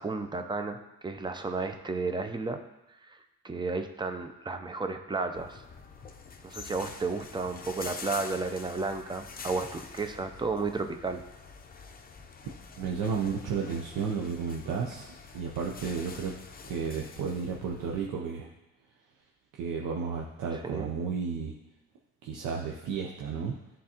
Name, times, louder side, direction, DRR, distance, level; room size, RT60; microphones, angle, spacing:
voice 1, 0.0-2.6 3.1-3.2 3.4-5.6 6.4-11.2 20.6-20.9, right 3 dB, 15° right, 7 dB, 0.6 m, -33 dB
sound 1, 5.3-18.1, left 5 dB, 30° left, 0.6 m, -46 dB
voice 2, 12.8-15.1 15.3-16.4 16.6-18.5 19.6-21.5 22.2-23.5, right 6 dB, 90° right, -1 dB, 0.7 m, -32 dB
11.0 x 3.8 x 2.9 m, 0.97 s
cardioid pair, 90°, 30 cm